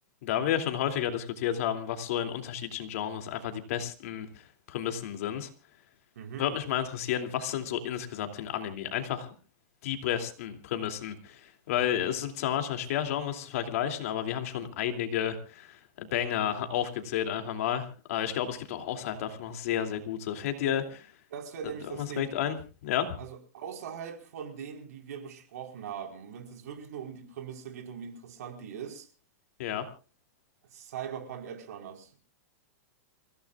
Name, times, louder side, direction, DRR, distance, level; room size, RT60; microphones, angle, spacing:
voice 1, 0.2-5.5 6.4-9.4 9.8-20.8 21.6-22.6 22.8-23.1 29.6-29.8, left 10 dB, 60° left, 2.8 m, -31 dB
voice 2, 21.3-22.3 23.2-29.1 30.7-32.2, right 8 dB, 70° right, 4.5 m, -41 dB
29.0 x 16.5 x 2.4 m
supercardioid pair, 150°, 9 cm